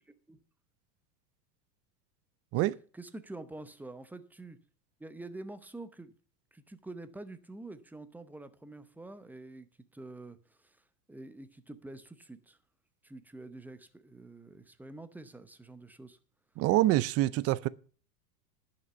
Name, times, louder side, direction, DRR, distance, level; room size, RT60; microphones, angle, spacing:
voice 1, 0.1-0.4 2.9-4.6 5.0-6.1 6.5-9.7 9.9-12.6 13.0-16.2 17.3-17.7, right 2 dB, 5° right, 0.7 m, -47 dB
voice 2, 16.6-17.7, right 16 dB, 30° right, 0.4 m, -26 dB
10.5 x 6.0 x 6.9 m
hypercardioid pair, 115°, 48 cm